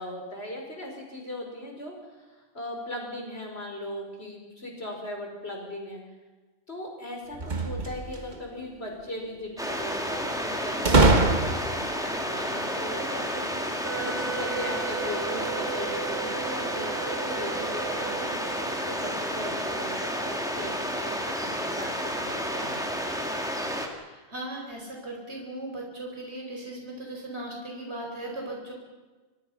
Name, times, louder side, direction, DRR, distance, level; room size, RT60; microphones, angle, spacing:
voice 1, 0.0-6.0 6.7-23.0, left 1 dB, 65° left, 1 dB, 5.3 m, -38 dB
sound 1, 7.3-8.4 10.9-11.9, right 2 dB, 40° right, 1.7 m, -22 dB
sound 2, 9.6-23.9, equal, 5° right, 2.7 m, -31 dB
Wind instrument woodwind instrument, 13.8-19.0, right 8 dB, 85° right, 1.6 m, -36 dB
voice 2, 23.8-28.7, right 1 dB, 70° right, 0 dB, 4.9 m, -38 dB
25.5 x 23.0 x 5.7 m, 1.2 s
omnidirectional pair, 1.1 m